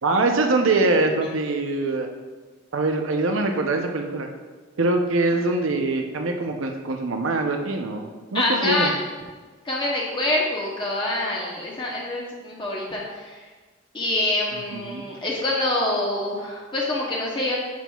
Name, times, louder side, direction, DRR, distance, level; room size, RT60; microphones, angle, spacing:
voice 1, 0.0-2.1 2.7-4.3 4.8-8.9 14.7-15.0, right 2 dB, 85° right, 4 dB, 0.7 m, -23 dB
voice 2, 8.3-8.9 9.6-13.4 13.9-17.6, left 1 dB, 25° left, -4 dB, 0.9 m, -26 dB
8.4 x 6.0 x 2.3 m, 1.3 s
head